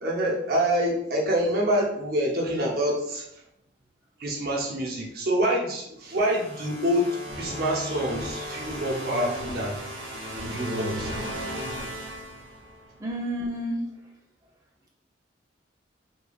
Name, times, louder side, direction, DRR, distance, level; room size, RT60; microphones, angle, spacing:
voice 1, 0.0-3.4 4.2-9.8 10.4-11.1, equal, 50° right, -2 dB, 0.7 m, -26 dB
sound 1, 6.1-13.0, equal, 80° right, 0.8 m, -35 dB
voice 2, 13.0-13.8, equal, 20° right, -2 dB, 0.4 m, -30 dB
3.2 x 2.3 x 2.3 m, 0.78 s
head